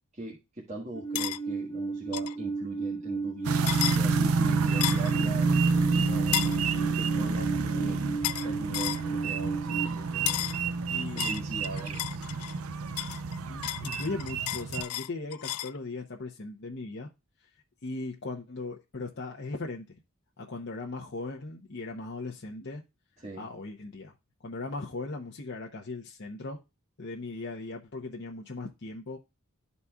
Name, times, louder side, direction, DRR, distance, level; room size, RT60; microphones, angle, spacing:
voice 1, 0.1-3.7 4.0-6.5 6.8-8.0 8.4-10.5 11.1-12.0 23.2-23.5, right 2 dB, 30° right, 1.5 m, -40 dB
Alarm, 0.9-9.9, right 4 dB, 20° left, 1.0 m, -34 dB
sound 1, 1.1-1.4 2.1-2.4 3.7-4.0 4.8-5.1 6.3-6.6 8.2-8.5 8.7-9.0 10.3-10.6 11.2-12.6 13.0-15.8, left 15 dB, 85° left, 0.3 m, -33 dB
sound 2, 3.4-14.8, right 4 dB, 80° right, 0.6 m, -29 dB
voice 2, 10.9-11.5 13.5-17.1 17.4-17.5 17.8-20.0 20.4-22.8 23.4-24.1 24.4-26.6 27.0-29.2, left 3 dB, 55° left, 0.8 m, -38 dB
12.5 x 4.2 x 2.3 m
head